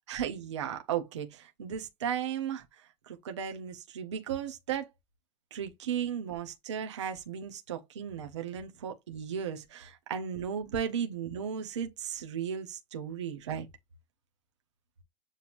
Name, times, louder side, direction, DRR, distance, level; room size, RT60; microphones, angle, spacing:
voice 1, 0.1-2.6 3.1-4.9 5.5-13.7, right 8 dB, 25° right, 0.4 m, -35 dB
6.9 x 2.9 x 2.4 m
supercardioid pair, 175°, 42 cm